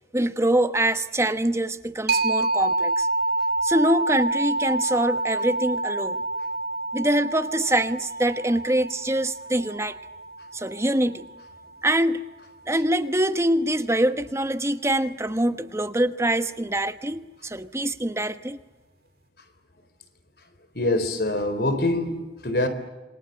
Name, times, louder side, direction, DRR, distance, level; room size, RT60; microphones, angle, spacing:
voice 1, 0.1-3.1 3.6-6.2 6.9-10.0 10.5-11.3 11.8-12.2 12.7-18.6, right 1 dB, 15° right, 1.1 m, -24 dB
sound 1, 2.1-11.5, right 2 dB, 55° right, 2.1 m, -28 dB
voice 2, 20.7-22.7, left 2 dB, 60° left, 4.1 m, -24 dB
28.0 x 25.0 x 7.9 m
head